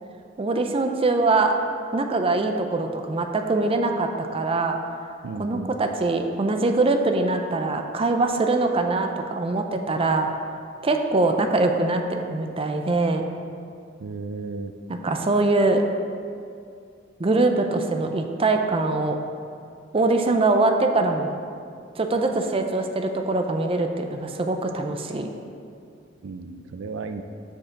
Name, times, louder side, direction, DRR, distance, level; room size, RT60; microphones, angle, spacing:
voice 1, 0.4-1.5 1.9-4.8 5.4-10.3 10.8-13.2 15.0-15.8 17.2-19.2 19.9-21.3 22.0-25.3, right 2 dB, 30° right, 5 dB, 0.5 m, -23 dB
voice 2, 5.2-5.7 14.0-14.7 26.2-27.2, right 4 dB, 80° right, 8 dB, 0.4 m, -34 dB
7.4 x 4.8 x 6.4 m, 2.3 s
head